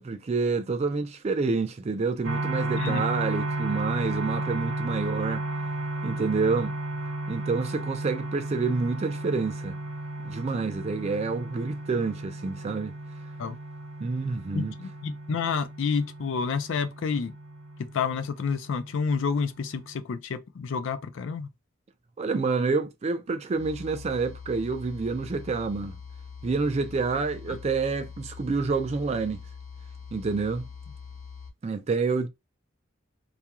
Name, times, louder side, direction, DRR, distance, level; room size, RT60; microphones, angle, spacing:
voice 1, 0.0-5.4 6.0-6.8 7.3-9.8 10.2-13.0 14.0-14.7 22.2-26.0 26.4-29.4 30.1-30.7 31.6-32.3, right 4 dB, 30° right, 0.3 m, -28 dB
sound 1, 2.2-20.0, right 2 dB, 50° right, 0.9 m, -34 dB
voice 2, 14.5-17.3 17.9-21.5, left 5 dB, 60° left, 0.4 m, -29 dB
sound 2, 23.5-31.5, left 6 dB, 35° left, 0.8 m, -43 dB
2.4 x 2.3 x 2.8 m
head